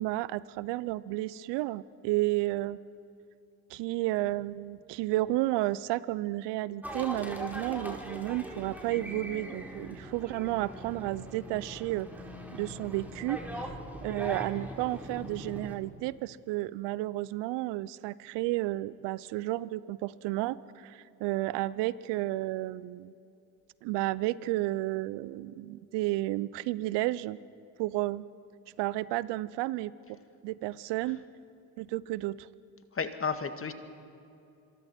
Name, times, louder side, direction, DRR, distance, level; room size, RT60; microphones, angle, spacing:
voice 1, 0.0-2.8 3.7-12.1 12.5-13.8 14.0-23.1 23.8-27.4 27.8-28.3 28.8-29.9 30.4-31.2 31.8-32.5, right 17 dB, 75° right, 19 dB, 0.7 m, -32 dB
sound 1, 6.8-15.7, equal, 5° right, 4.0 m, -41 dB
voice 2, 32.9-33.7, left 5 dB, 30° left, 8 dB, 1.9 m, -32 dB
26.5 x 22.5 x 4.4 m, 2.6 s
hypercardioid pair, 60°, 42 cm